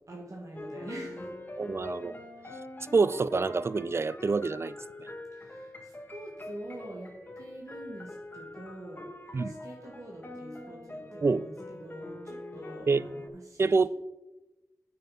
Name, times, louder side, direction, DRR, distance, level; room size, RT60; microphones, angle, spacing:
voice 1, 0.1-1.4 5.3-7.1 7.3-9.1 9.4-13.9, right 1 dB, 60° right, 1.7 m, -45 dB
sound 1, 0.5-13.3, left 1 dB, 30° left, 1.3 m, -44 dB
voice 2, 1.6-2.1 2.9-4.8 9.3-9.6 11.2-11.5 12.9-13.1 13.6-13.9, right 4 dB, 45° right, 0.3 m, -26 dB
8.9 x 5.6 x 5.7 m
wide cardioid pair, 85°, 6 cm